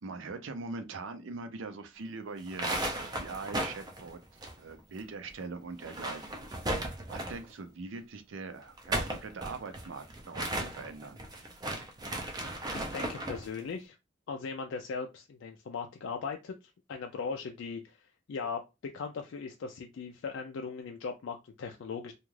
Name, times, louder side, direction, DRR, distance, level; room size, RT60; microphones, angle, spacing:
voice 1, 0.0-2.8 3.2-6.4 7.1-11.2, right 3 dB, 80° right, 0.5 m, -42 dB
sound 1, 2.4-5.0 5.3-5.4 5.7-7.5 8.6-13.5, right 1 dB, 20° right, 0.4 m, -36 dB
voice 2, 12.7-14.0 14.3-18.6 18.9-22.1, left 5 dB, 75° left, 0.3 m, -39 dB
2.4 x 2.3 x 3.1 m
head